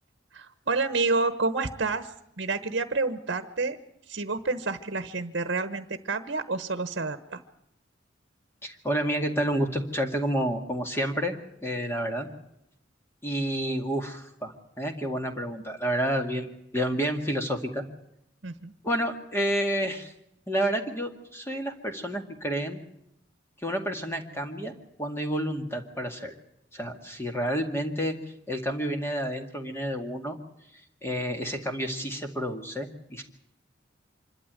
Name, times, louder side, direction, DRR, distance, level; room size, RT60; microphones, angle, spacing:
voice 1, 0.3-2.1 2.4-3.8 4.1-7.4 18.4-18.7, right 3 dB, 60° right, 10 dB, 1.1 m, -29 dB
voice 2, 8.6-11.4 11.6-12.3 13.2-17.8 18.8-20.1 20.5-22.8 23.6-24.7 25.0-26.3 26.7-28.1 28.5-30.4 30.7-33.2, equal, 15° left, 3 dB, 2.1 m, -30 dB
25.5 x 12.5 x 9.0 m, 0.79 s
head